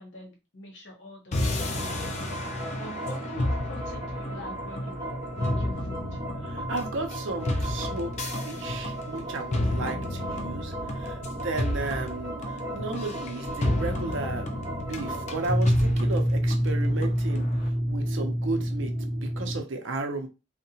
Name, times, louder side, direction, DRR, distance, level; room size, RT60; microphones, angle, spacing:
voice 1, 0.0-5.0 5.3-6.2, left 1 dB, 60° left, 0.9 m, -45 dB
sound 1, 1.3-17.7, left 1 dB, 35° left, 0.4 m, -32 dB
sound 2, 1.6-19.6, equal, 20° right, 0.9 m, -31 dB
voice 2, 6.4-12.4 12.7-14.5 14.7-17.5 17.9-18.9 19.2-20.3, right 3 dB, 70° right, 0.5 m, -34 dB
2.7 x 2.1 x 2.7 m
head